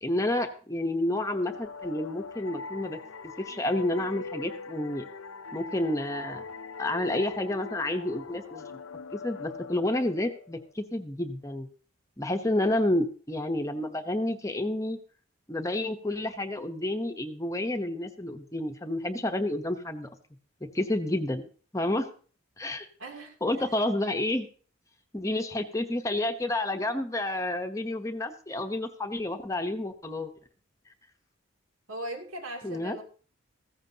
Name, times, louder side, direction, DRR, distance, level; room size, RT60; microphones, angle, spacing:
voice 1, 0.0-3.0 3.4-5.0 5.5-6.4 6.8-8.6 9.1-11.7 12.2-15.0 15.5-20.1 20.6-21.5 21.7-22.1 22.6-22.9 23.4-24.5 25.1-30.3 32.6-33.0, left 1 dB, 15° left, 6 dB, 0.9 m, -30 dB
sound 1, 1.3-10.7, left 4 dB, 80° left, 0.6 m, -42 dB
voice 2, 23.0-24.1 31.9-33.0, right 1 dB, 85° right, 2 dB, 2.8 m, -40 dB
15.0 x 15.0 x 2.8 m, 0.41 s
head